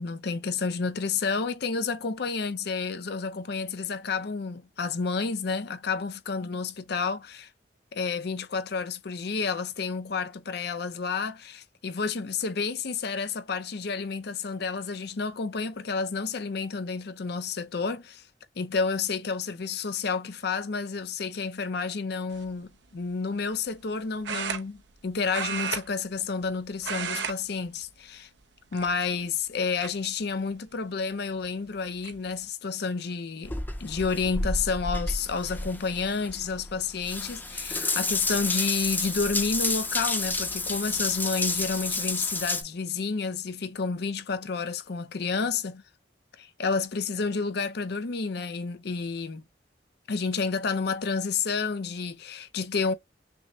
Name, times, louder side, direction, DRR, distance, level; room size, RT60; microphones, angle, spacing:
voice 1, 0.0-7.5 7.9-18.2 18.6-28.3 28.7-45.8 46.4-49.4 50.1-52.9, left 4 dB, 60° left, 0.6 m, -30 dB
sound 1, 22.3-22.6 24.2-25.0 25.3-26.5 26.8-27.4 27.7-27.9 28.7-29.2 29.8-29.9 31.4-31.5 31.8-32.2, right 6 dB, 75° right, 0.7 m, -33 dB
Water tap faucet / Bathtub (filling or washing) / Drip, 33.4-42.6, left 2 dB, 10° left, 0.6 m, -30 dB
6.1 x 2.1 x 2.7 m
head